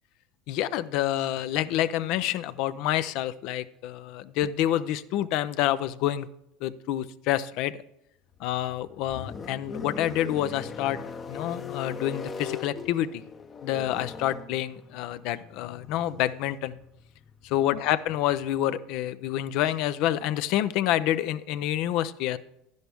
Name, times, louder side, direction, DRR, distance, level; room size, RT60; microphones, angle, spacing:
voice 1, 0.5-6.3 6.6-7.8 8.4-13.2 13.6-16.8 17.4-22.4, left 12 dB, 65° left, 14 dB, 0.6 m, -28 dB
sound 1, 8.3-18.6, left 5 dB, 35° left, 0.8 m, -40 dB
11.5 x 10.5 x 3.5 m, 0.84 s
hypercardioid pair, 85°, 0 cm